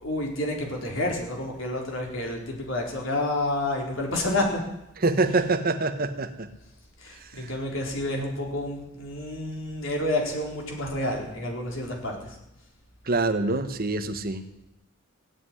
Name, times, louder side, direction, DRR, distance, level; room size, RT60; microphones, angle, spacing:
voice 1, 0.0-4.6 5.2-5.6 7.0-12.4, left 1 dB, 75° left, 0 dB, 4.3 m, -29 dB
voice 2, 5.0-6.5 13.1-14.4, right 3 dB, 50° right, 7 dB, 1.3 m, -25 dB
18.0 x 7.8 x 9.9 m, 0.87 s
head